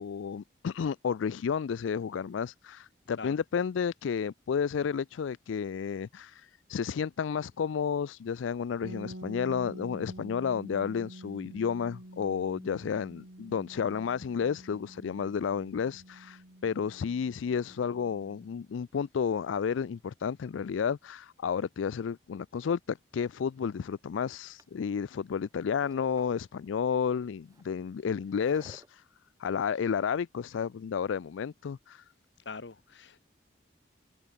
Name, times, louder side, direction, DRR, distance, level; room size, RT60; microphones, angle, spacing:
voice 1, 0.0-29.0 29.4-32.0, left 6 dB, 85° left, 0.4 m, -32 dB
sound 1, 8.8-18.6, right 1 dB, 85° right, 4.3 m, -48 dB
sound 2, 23.3-28.9, right 1 dB, 20° right, 6.7 m, -58 dB
voice 2, 32.4-33.2, left 4 dB, 70° left, 1.0 m, -44 dB
head